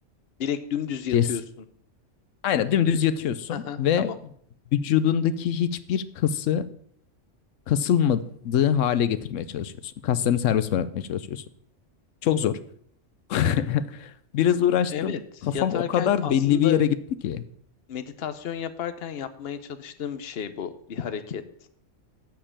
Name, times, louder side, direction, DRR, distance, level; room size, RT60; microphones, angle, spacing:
voice 1, 0.4-1.4 3.5-4.2 14.9-15.2 15.5-16.8 17.9-21.4, left 8 dB, 55° left, 11 dB, 1.0 m, -32 dB
voice 2, 2.4-4.1 4.7-6.7 7.7-11.4 12.2-12.6 13.3-15.2 15.4-17.0 17.2-17.4, left 9 dB, 80° left, 14 dB, 1.0 m, -23 dB
8.0 x 6.6 x 7.3 m, 0.64 s
omnidirectional pair, 1.3 m